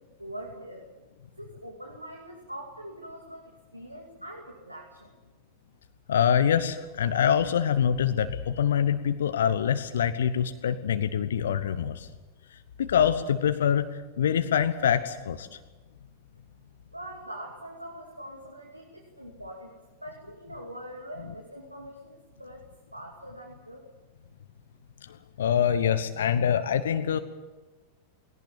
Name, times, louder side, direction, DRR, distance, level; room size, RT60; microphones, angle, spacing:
voice 1, 0.2-0.9 1.4-5.1 16.9-19.7 20.0-23.8, right 1 dB, 85° right, 0 dB, 2.5 m, -43 dB
voice 2, 6.1-12.1 12.5-15.6 25.0-27.2, left 8 dB, 65° left, 10 dB, 1.1 m, -25 dB
19.5 x 18.0 x 8.7 m, 1.2 s
figure-of-eight pair, 90°, 0 cm